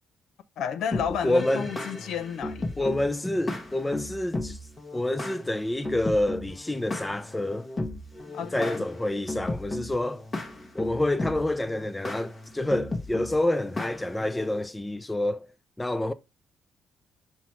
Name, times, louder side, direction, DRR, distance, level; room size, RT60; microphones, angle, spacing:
voice 1, 0.6-2.9 8.3-8.8, left 8 dB, 75° left, 0.6 m, -32 dB
sound 1, 0.9-14.6, left 2 dB, 35° left, 1.4 m, -36 dB
voice 2, 1.2-1.7 2.8-4.6 4.9-7.7 8.5-10.2 10.7-15.5 15.8-16.1, left 1 dB, 15° left, 0.6 m, -28 dB
6.1 x 4.0 x 4.5 m
cardioid pair, 90°, 0 cm